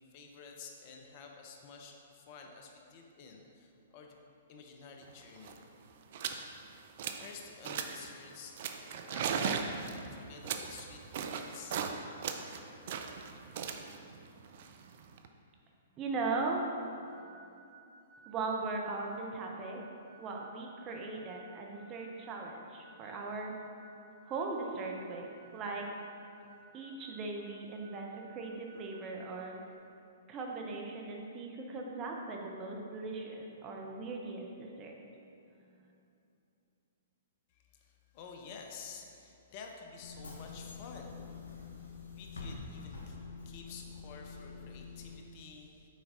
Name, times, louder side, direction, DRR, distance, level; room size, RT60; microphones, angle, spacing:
voice 1, 0.0-4.2 4.5-5.6 7.1-8.6 9.0-11.8 37.5-41.2 41.8-43.2 43.4-45.9, left 5 dB, 40° left, 2 dB, 0.6 m, -51 dB
sound 1, 5.1-5.2 5.4-5.6 6.1-6.4 6.8-7.3 7.6-8.1 8.6-11.9 12.2-15.3, right 6 dB, 50° right, 0.4 m, -37 dB
voice 2, 16.0-16.6 18.3-19.8 20.2-23.5 24.3-25.3 25.5-25.9 26.7-29.6 30.3-35.0, right 3 dB, 25° right, 0 dB, 0.7 m, -38 dB
sound 2, 17.1-29.8, right 3 dB, 70° right, 1.0 m, -59 dB
Bus / Engine, 40.0-45.2, left 4 dB, 70° left, 0.9 m, -46 dB
6.3 x 4.6 x 3.8 m, 2.7 s
figure-of-eight pair, 115°, 0 cm